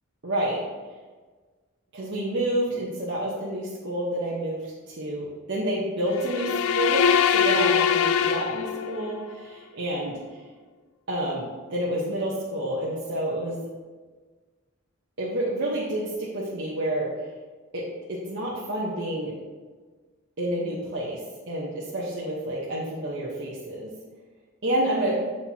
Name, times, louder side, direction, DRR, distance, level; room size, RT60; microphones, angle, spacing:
voice 1, 0.2-0.6 1.9-10.2 11.1-13.6 15.2-17.1 17.7-19.3 20.4-23.9 24.6-25.2, right 1 dB, 60° right, -7 dB, 1.1 m, -29 dB
sound 1, 6.2-9.2, left 7 dB, 85° left, 0.3 m, -23 dB
7.9 x 4.3 x 2.9 m, 1.4 s
head